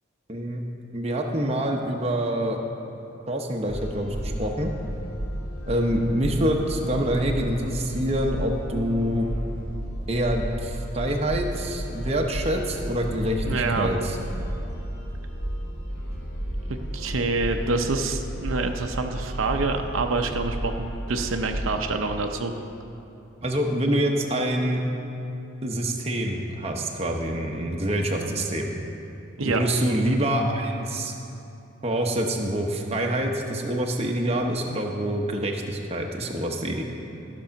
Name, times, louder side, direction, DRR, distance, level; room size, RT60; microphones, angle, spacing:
voice 1, 0.3-0.6 0.9-2.6 3.3-4.7 5.7-9.3 10.1-14.2 23.4-24.8 25.6-28.7 29.4-31.1 31.8-36.8, right 1 dB, 30° right, 1 dB, 0.8 m, -26 dB
Gahcomojo Rising Loop, 3.7-21.8, equal, 50° left, 2.5 m, -33 dB
voice 2, 13.4-13.9 16.7-22.5 29.4-29.6, right 3 dB, 80° right, 5 dB, 0.7 m, -27 dB
13.5 x 6.2 x 5.7 m, 2.8 s
head